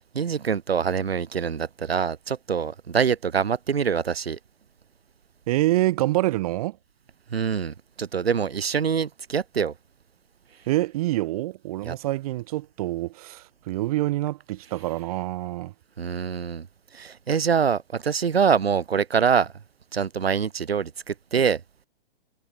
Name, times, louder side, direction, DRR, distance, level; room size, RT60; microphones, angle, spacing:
voice 1, 0.1-4.4 7.3-9.7 11.8-11.9 16.0-16.7 16.9-19.5 19.9-21.6, right 7 dB, 85° right, 2.5 m, -25 dB
voice 2, 5.5-6.8 10.7-15.7, right 17 dB, 40° right, 3.5 m, -26 dB
hypercardioid pair, 155°, 30 cm